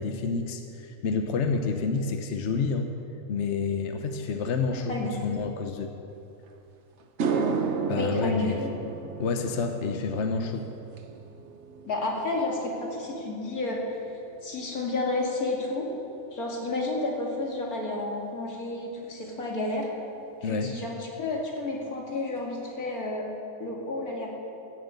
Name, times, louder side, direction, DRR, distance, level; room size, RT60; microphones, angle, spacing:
voice 1, 0.0-2.9 3.3-5.9 7.9-8.5 9.2-10.7 20.4-20.7, left 4 dB, 55° left, 5 dB, 1.0 m, -29 dB
voice 2, 4.7-5.4 7.9-8.7 11.8-13.8 14.4-15.9 16.3-19.9 20.4-23.3 23.6-24.3, left 2 dB, 80° left, -2 dB, 2.7 m, -31 dB
sound 1, 6.5-6.6 7.0-15.5 15.8-16.2 19.8-19.9 21.6-21.7 22.0-22.1 22.4-22.9, right 5 dB, 55° right, 1.1 m, -34 dB
14.5 x 7.8 x 8.3 m, 2.8 s
omnidirectional pair, 1.5 m